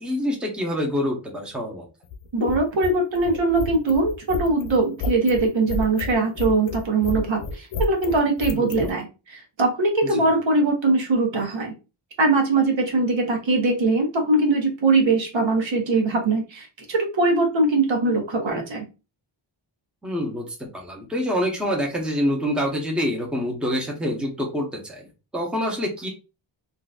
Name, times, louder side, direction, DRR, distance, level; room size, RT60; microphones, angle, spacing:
voice 1, 0.0-1.9 8.5-8.9 10.1-10.3 20.0-25.1 25.3-26.1, equal, ahead, 0 dB, 0.8 m, -26 dB
sound 1, 2.0-8.9, left 3 dB, 70° left, 0.6 m, -30 dB
voice 2, 2.3-11.7 12.2-18.8, right 3 dB, 70° right, 2 dB, 1.0 m, -21 dB
3.8 x 2.6 x 2.3 m, 0.29 s
wide cardioid pair, 150°, 48 cm